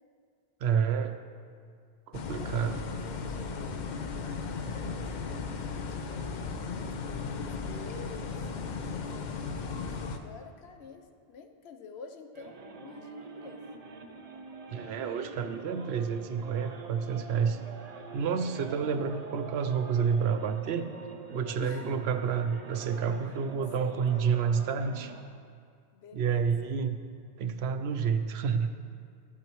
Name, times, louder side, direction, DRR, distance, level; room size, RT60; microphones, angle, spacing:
voice 1, 0.6-1.2 2.1-2.8 14.7-17.6 18.1-20.9 21.3-25.1 26.1-27.0 27.4-28.7, right 6 dB, 75° right, 9 dB, 0.8 m, -29 dB
sound 1, 2.1-10.2, left 4 dB, 55° left, 0.6 m, -36 dB
voice 2, 2.4-3.9 4.2-13.6 21.6-22.0 23.8-24.3 25.9-26.7, left 4 dB, 80° left, 6 dB, 0.9 m, -49 dB
sound 2, 12.3-25.2, right 4 dB, 45° right, 0.6 m, -45 dB
12.0 x 8.5 x 3.0 m, 2.2 s
omnidirectional pair, 1.1 m